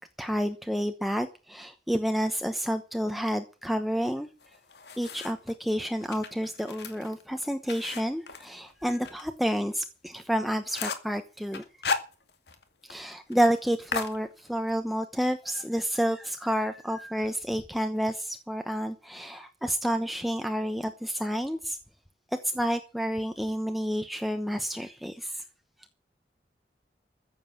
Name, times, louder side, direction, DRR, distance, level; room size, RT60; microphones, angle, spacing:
voice 1, 0.2-4.3 5.0-11.6 12.8-21.8 22.5-25.4, equal, ahead, 1.0 m, -29 dB
sound 1, 4.4-5.5 6.0-9.2 9.6-9.7 10.1-10.2 10.4-11.1 11.5-12.6 12.9-13.0 13.3-13.5 13.9-14.8, left 4 dB, 75° left, 2.2 m, -35 dB
15.0 x 7.8 x 8.6 m
head